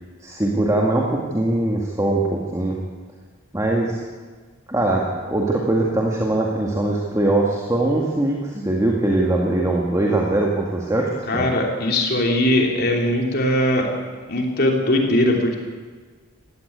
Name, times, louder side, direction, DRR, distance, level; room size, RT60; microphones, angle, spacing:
voice 1, 0.2-2.8 3.5-4.0 4.7-11.5, right 2 dB, 15° right, -2 dB, 2.2 m, -21 dB
voice 2, 11.3-13.9 14.3-15.6, left 1 dB, 50° left, 1 dB, 3.2 m, -20 dB
17.5 x 15.5 x 9.5 m, 1.5 s
head